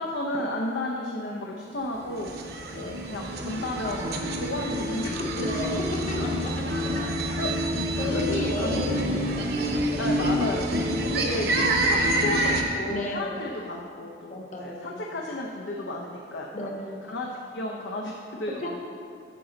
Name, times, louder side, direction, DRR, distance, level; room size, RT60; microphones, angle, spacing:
voice 1, 0.0-2.3 2.7-4.1 4.3-5.5 7.4-7.5 7.9-8.8 10.0-10.6 11.1-11.5 11.8-16.7 17.1-17.3 17.5-18.9, left 1 dB, 75° left, -1 dB, 0.7 m, -33 dB
sound 1, 2.1-12.6, right 1 dB, 60° right, 0.9 m, -27 dB
voice 2, 5.4-7.1 8.0-10.0 12.8-13.3 14.3-15.0 16.5-17.1 18.6-18.7, left 1 dB, 40° left, -1 dB, 1.1 m, -34 dB
9.2 x 6.9 x 3.9 m, 2.4 s
head